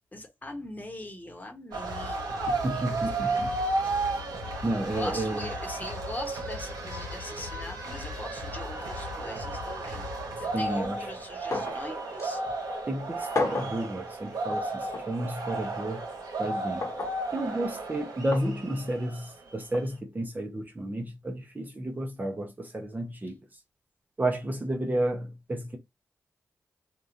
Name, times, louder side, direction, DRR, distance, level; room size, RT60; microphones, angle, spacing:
voice 1, 0.0-2.3 2.7-3.4 4.4-10.0 10.4-12.4, left 1 dB, 25° left, 1.1 m, -41 dB
sound 1, 1.7-19.5, right 2 dB, 80° right, 1.0 m, -33 dB
voice 2, 2.5-3.5 4.6-5.5 10.5-11.1 12.9-16.0 16.4-16.8 17.3-23.4 24.2-25.8, right 1 dB, 25° right, 0.8 m, -31 dB
sound 2, 11.5-11.8 12.2-12.3 13.3-13.8 14.9-15.1 16.8-17.2 18.3-18.5 19.7-19.9, left 3 dB, 50° left, 1.0 m, -31 dB
2.8 x 2.4 x 2.6 m
supercardioid pair, 45°, 7 cm